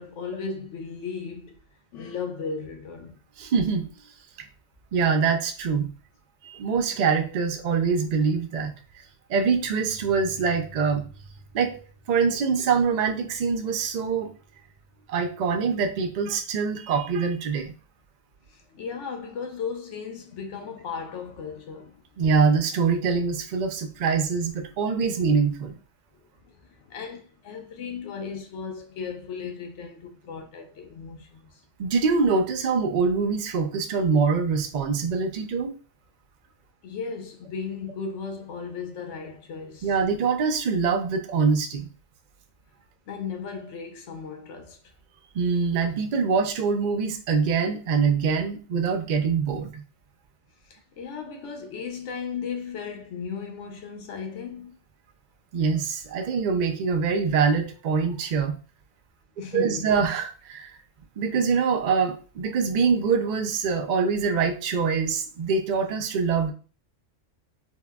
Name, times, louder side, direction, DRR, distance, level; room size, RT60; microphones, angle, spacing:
voice 1, 0.0-1.6 1.9-3.2 18.5-22.2 26.4-31.6 36.8-40.0 43.1-44.8 50.6-54.8 59.4-59.9, left 6 dB, 75° left, 0.9 m, -36 dB
voice 2, 3.4-3.9 4.9-5.9 6.4-8.7 9.3-11.1 11.5-14.3 15.1-17.7 22.2-25.8 31.8-35.8 39.8-41.9 45.3-49.8 55.5-58.5 59.5-60.7 61.2-66.5, right 5 dB, 70° right, 0.4 m, -24 dB
3.6 x 2.1 x 2.2 m
omnidirectional pair, 1.3 m